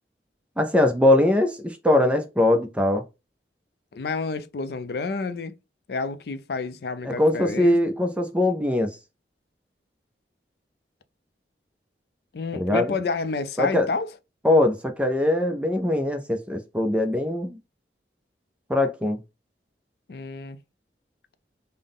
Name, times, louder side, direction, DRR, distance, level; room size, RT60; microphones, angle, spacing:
voice 1, 0.6-3.0 7.0-9.0 12.5-12.9 13.6-13.9 14.4-17.6 18.7-19.2, left 1 dB, 5° right, 0.4 m, -21 dB
voice 2, 3.9-5.5 5.9-7.8 12.3-14.1 20.1-20.6, left 4 dB, 60° left, 0.4 m, -29 dB
3.5 x 2.1 x 3.8 m
head